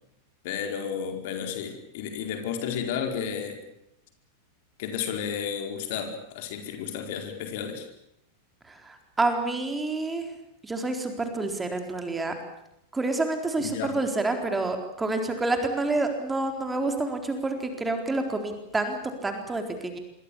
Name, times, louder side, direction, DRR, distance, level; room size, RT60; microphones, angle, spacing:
voice 1, 0.4-3.6 4.8-7.9 13.6-13.9, left 7 dB, 50° left, 5 dB, 4.6 m, -32 dB
voice 2, 8.7-10.3 10.6-12.4 12.9-20.0, right 2 dB, 10° right, 5 dB, 4.0 m, -28 dB
26.5 x 23.5 x 7.2 m, 0.82 s
figure-of-eight pair, 90°, 0 cm